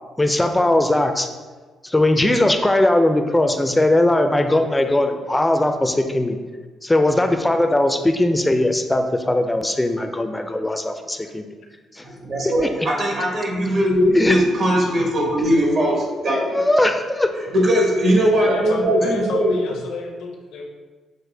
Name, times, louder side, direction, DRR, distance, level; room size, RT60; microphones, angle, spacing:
voice 1, 0.2-1.3 1.8-6.4 6.8-11.6 12.0-12.1 12.4-12.7 14.1-14.4 16.4-17.3, left 1 dB, 10° left, 6 dB, 0.4 m, -19 dB
voice 2, 12.2-16.6 17.5-19.6, equal, 60° right, -2 dB, 1.2 m, -19 dB
voice 3, 18.3-20.6, left 3 dB, 80° left, 1 dB, 0.7 m, -31 dB
6.4 x 2.1 x 3.3 m, 1.4 s
cardioid pair, 90°, 0 cm